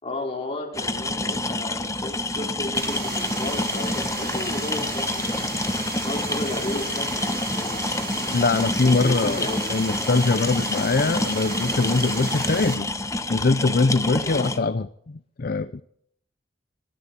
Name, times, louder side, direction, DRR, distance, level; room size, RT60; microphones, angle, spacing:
voice 1, 0.0-5.2 6.0-7.8 8.8-9.6 14.2-14.4, left 1 dB, 30° left, 0 dB, 4.8 m, -33 dB
sound 1, 0.7-14.6, left 2 dB, 15° left, 1.1 m, -28 dB
sound 2, 2.7-12.7, right 4 dB, 55° right, 5.2 m, -34 dB
voice 2, 8.3-12.9 13.3-15.8, left 3 dB, 50° left, 13 dB, 0.6 m, -22 dB
27.0 x 11.0 x 4.3 m, 0.69 s
head